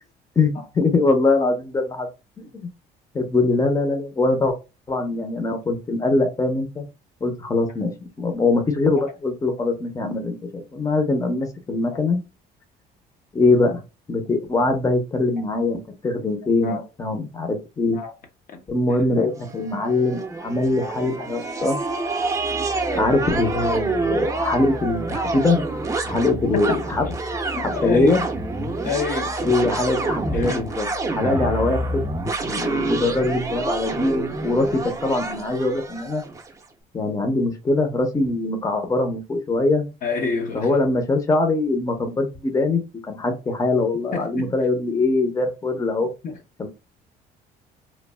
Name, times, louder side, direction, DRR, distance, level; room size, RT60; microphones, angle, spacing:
voice 1, 0.4-2.1 3.1-4.6 4.9-6.9 7.2-12.2 13.3-13.8 14.1-18.0 18.7-21.8 22.9-25.6 26.0-27.0 27.8-28.2 29.4-30.9 31.1-32.0 32.5-36.2 36.9-39.9 40.5-46.1 46.6-46.7, left 2 dB, 20° left, 0.8 m, -22 dB
sound 1, 19.4-36.5, right 2 dB, 20° right, 0.6 m, -27 dB
voice 2, 27.6-28.2 28.8-29.4 30.3-30.7 40.0-40.7 44.1-44.5 46.2-46.4, left 5 dB, 55° left, 0.8 m, -28 dB
3.1 x 2.2 x 2.2 m
cardioid pair, 110°, 17 cm